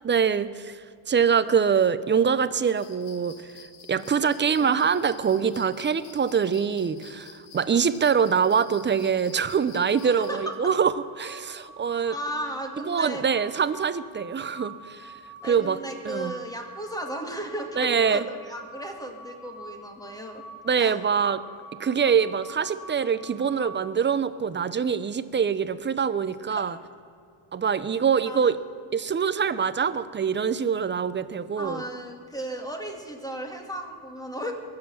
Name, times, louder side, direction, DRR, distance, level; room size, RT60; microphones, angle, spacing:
voice 1, 0.0-3.5 3.9-12.1 12.9-15.1 15.4-15.8 16.0-16.3 17.8-18.2 20.6-21.4 21.8-26.8 27.5-28.6 28.9-31.8, right 6 dB, 25° right, 15 dB, 0.5 m, -24 dB
sound 1, 2.8-10.4, left 6 dB, 80° left, 2.2 m, -50 dB
sound 2, 9.9-23.9, right 2 dB, 60° left, 2.1 m, -45 dB
voice 2, 10.2-10.5 12.1-13.2 15.4-20.4 20.8-21.0 26.5-26.6 28.2-28.5 31.6-34.5, equal, 10° left, 3 dB, 2.1 m, -35 dB
22.0 x 7.8 x 7.1 m, 2.4 s
cardioid pair, 125°, 48 cm